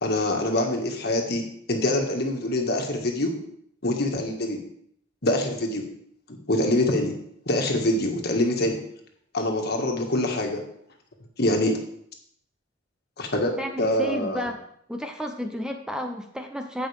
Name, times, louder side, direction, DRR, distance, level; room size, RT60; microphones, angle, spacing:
voice 1, 0.0-3.3 3.8-4.6 5.2-5.8 6.3-7.1 7.5-8.8 9.3-10.6 11.4-11.8 13.2-14.4, left 1 dB, 55° left, 2 dB, 1.6 m, -25 dB
voice 2, 13.6-14.6 14.9-16.9, equal, 5° right, 5 dB, 0.5 m, -32 dB
15.5 x 5.6 x 3.3 m, 0.70 s
head